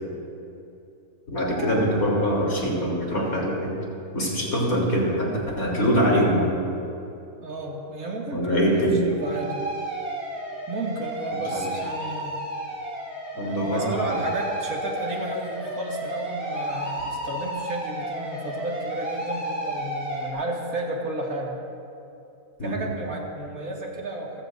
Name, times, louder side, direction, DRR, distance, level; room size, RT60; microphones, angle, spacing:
voice 1, 1.3-3.7 4.1-6.6 8.3-9.1 11.5-11.6 13.4-14.1 22.6-22.9, equal, 70° left, -4 dB, 4.1 m, -23 dB
sound 1, 1.5-3.0 9.1-20.3, right 1 dB, 45° right, 3.8 m, -33 dB
voice 2, 7.4-9.6 10.7-12.4 13.3-21.6 22.6-24.4, right 2 dB, 75° right, -2 dB, 2.6 m, -32 dB
28.0 x 15.5 x 2.7 m, 2.7 s
omnidirectional pair, 1.5 m